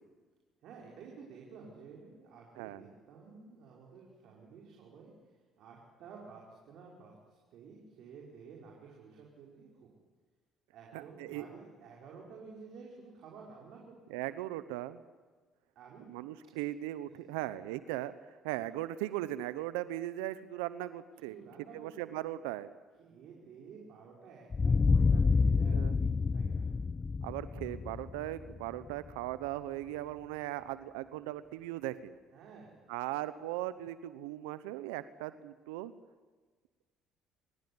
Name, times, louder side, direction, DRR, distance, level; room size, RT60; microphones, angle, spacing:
voice 1, 0.6-10.0 10.7-14.2 15.8-16.1 17.1-17.2 21.2-21.9 22.4-22.5 23.0-26.7 32.3-32.8, right 5 dB, 65° right, -1 dB, 5.4 m, -52 dB
voice 2, 2.6-2.9 10.9-11.5 14.1-15.0 16.1-18.1 18.4-21.3 21.7-22.7 25.6-26.1 27.2-32.1 32.9-35.9, right 14 dB, 85° right, 14 dB, 0.9 m, -38 dB
sound 1, 24.5-29.1, left 4 dB, 35° left, 0.8 m, -28 dB
28.0 x 16.0 x 9.8 m, 1.4 s
hypercardioid pair, 65°, 0 cm